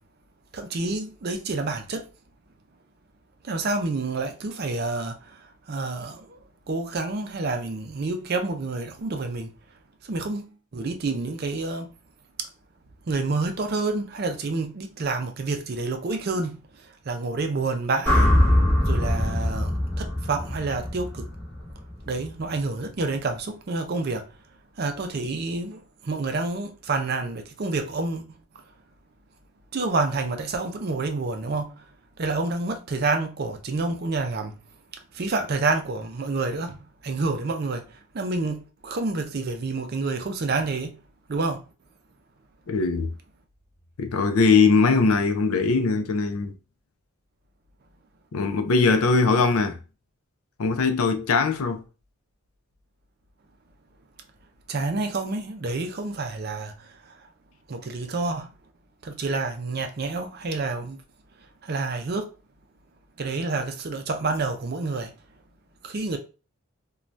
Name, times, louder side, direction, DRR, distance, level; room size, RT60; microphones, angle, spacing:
voice 1, 0.5-2.0 3.5-5.1 5.7-6.2 6.7-9.5 10.1-11.9 13.1-16.6 17.1-18.3 18.8-19.7 20.0-21.2 22.1-24.2 24.8-28.2 29.7-31.7 32.2-34.5 35.2-36.8 37.0-37.8 38.1-40.9 41.3-41.6 54.7-56.7 57.7-58.5 59.0-61.0 61.7-62.3 63.2-65.1 65.8-66.2, right 3 dB, 45° right, 0.4 m, -28 dB
sound 1, 18.1-22.3, left 1 dB, 10° left, 0.9 m, -23 dB
voice 2, 42.7-43.1 44.0-46.5 48.3-49.8 50.6-51.8, left 4 dB, 75° left, 0.5 m, -21 dB
2.6 x 2.3 x 3.1 m
head